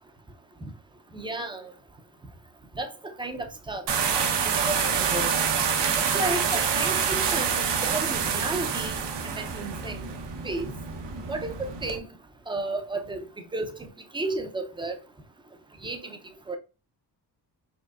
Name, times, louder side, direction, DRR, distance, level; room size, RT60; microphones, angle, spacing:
voice 1, 1.1-1.6 2.8-2.9 3.2-3.8 4.4-5.3 6.1-7.5 7.8-9.0 9.2-10.0 10.4-10.7 11.3-12.1 12.5-13.2 13.5-13.7 14.1-15.0 15.8-16.0 16.5-16.6, right 2 dB, 10° right, 0.4 m, -32 dB
sound 1, 3.9-12.0, right 6 dB, 75° right, 0.9 m, -27 dB
5.1 x 3.3 x 2.3 m
wide cardioid pair, 175°, 42 cm